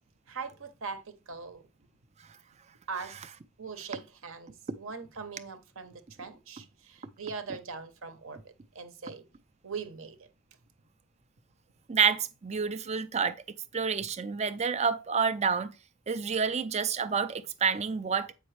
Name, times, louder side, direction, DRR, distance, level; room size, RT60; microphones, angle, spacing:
voice 1, 0.3-1.6 2.9-3.2 3.6-9.2 9.6-10.3, right 5 dB, 60° right, 0.8 m, -41 dB
voice 2, 11.9-13.4 13.7-15.7 16.1-18.3, right 6 dB, 30° right, 0.4 m, -28 dB
7.8 x 5.3 x 3.2 m
head